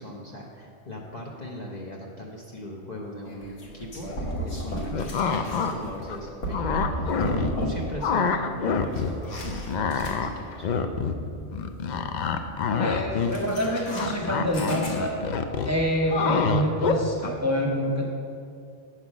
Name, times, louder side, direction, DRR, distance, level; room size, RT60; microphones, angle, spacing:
voice 1, 0.0-10.7, left 1 dB, 40° left, -2 dB, 0.9 m, -39 dB
sound 1, 3.2-8.1 8.3-10.6 13.2-15.3, equal, 80° left, 1.6 m, -34 dB
sound 2, 4.9-5.7 6.1-7.7 8.0-9.1 9.4-17.3, left 6 dB, 60° left, 0.4 m, -27 dB
voice 2, 12.8-15.2 15.7-18.1, equal, 15° right, -3 dB, 0.9 m, -26 dB
8.1 x 5.8 x 6.1 m, 2.4 s
omnidirectional pair, 1.3 m